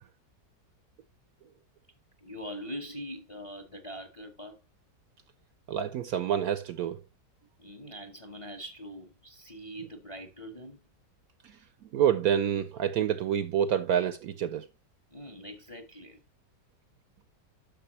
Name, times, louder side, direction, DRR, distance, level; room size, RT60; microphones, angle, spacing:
voice 1, 2.2-4.6 7.6-10.8 15.1-16.2, equal, 20° left, 1.0 m, -42 dB
voice 2, 5.7-7.0 11.9-14.7, right 9 dB, 65° right, 1.0 m, -27 dB
10.0 x 6.7 x 3.1 m
omnidirectional pair, 1.9 m